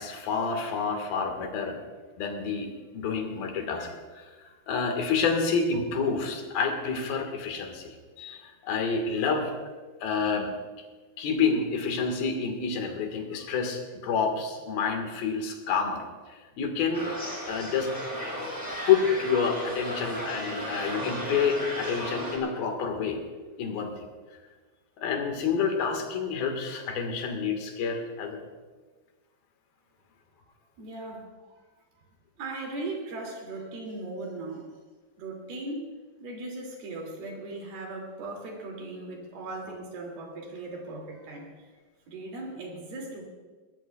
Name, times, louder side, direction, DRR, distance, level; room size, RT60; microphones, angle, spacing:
voice 1, 0.0-1.8 2.2-4.3 4.7-9.5 10.0-10.5 11.2-16.0 16.6-17.1 17.4-17.9 18.2-18.6 18.9-23.2 23.6-24.1 25.0-28.4, left 5 dB, 70° left, 4 dB, 3.4 m, -28 dB
sound 1, 16.9-22.4, equal, 5° right, 3.4 m, -35 dB
voice 2, 30.8-31.6 32.4-34.7 35.2-35.9 36.2-41.7 42.1-43.2, right 2 dB, 75° right, 0 dB, 4.3 m, -38 dB
21.5 x 18.0 x 2.3 m, 1.4 s
omnidirectional pair, 4.5 m